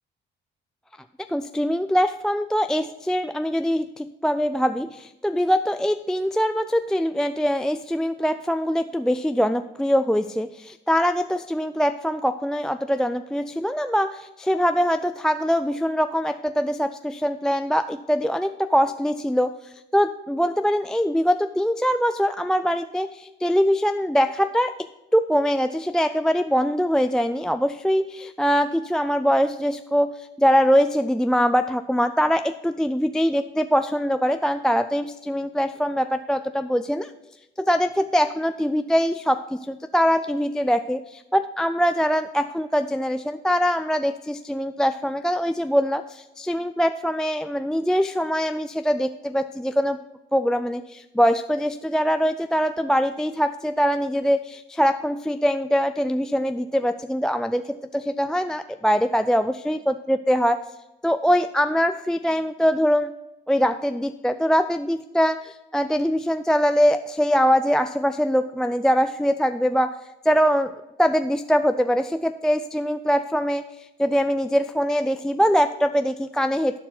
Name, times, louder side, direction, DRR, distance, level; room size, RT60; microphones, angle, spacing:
voice 1, 1.3-24.7 25.1-37.1 37.6-50.0 50.3-60.6 61.0-63.1 63.5-70.0 70.2-70.7 71.0-76.8, equal, 5° left, 8 dB, 0.3 m, -23 dB
12.5 x 4.6 x 5.9 m, 0.95 s
cardioid pair, 90°, 20 cm